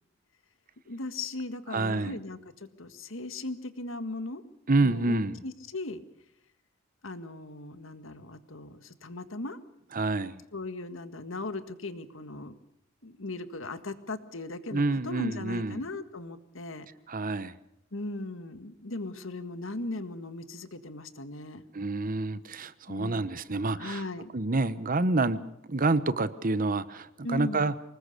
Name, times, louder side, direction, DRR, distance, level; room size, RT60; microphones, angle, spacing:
voice 1, 0.9-4.4 4.8-6.0 7.0-9.6 10.5-12.6 13.0-16.9 17.9-21.6 22.9-23.2 23.8-24.3 27.2-27.7, left 2 dB, 75° left, 11 dB, 1.7 m, -38 dB
voice 2, 1.7-2.2 4.7-5.4 9.9-10.4 14.7-15.8 17.1-17.6 21.7-24.0 24.3-25.4 25.7-27.7, right 2 dB, 45° right, 15 dB, 1.0 m, -28 dB
25.0 x 20.5 x 6.8 m, 0.78 s
head